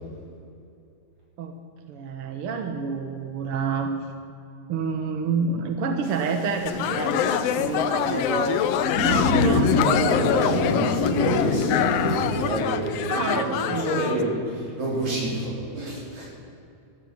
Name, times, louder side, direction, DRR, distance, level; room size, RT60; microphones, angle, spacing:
voice 1, 1.9-3.9 4.7-9.7 13.1-14.2, right 5 dB, 60° right, 6 dB, 1.8 m, -29 dB
Thunder / Rain, 6.0-12.5, left 2 dB, 40° left, 1.3 m, -27 dB
sound 1, 6.7-14.2, left 10 dB, 75° left, 1.5 m, -25 dB
voice 2, 9.8-16.3, right 1 dB, 75° right, -4 dB, 5.9 m, -28 dB
14.0 x 13.5 x 7.1 m, 2.6 s
omnidirectional pair, 3.3 m